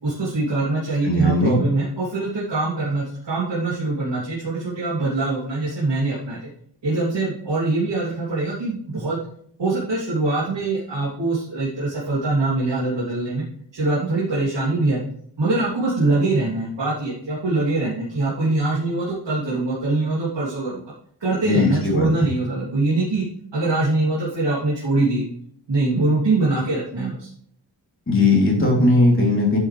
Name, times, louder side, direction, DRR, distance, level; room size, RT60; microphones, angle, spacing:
voice 1, 0.0-6.4 6.8-9.2 9.6-13.4 13.7-15.0 15.4-20.9 21.2-23.2 23.5-25.3 25.7-27.3, right 2 dB, 75° right, -8 dB, 3.3 m, -23 dB
voice 2, 1.0-1.6 21.4-22.1 28.1-29.6, left 2 dB, 30° left, -2 dB, 3.5 m, -18 dB
10.0 x 8.6 x 3.5 m, 0.63 s
wide cardioid pair, 145°, 44 cm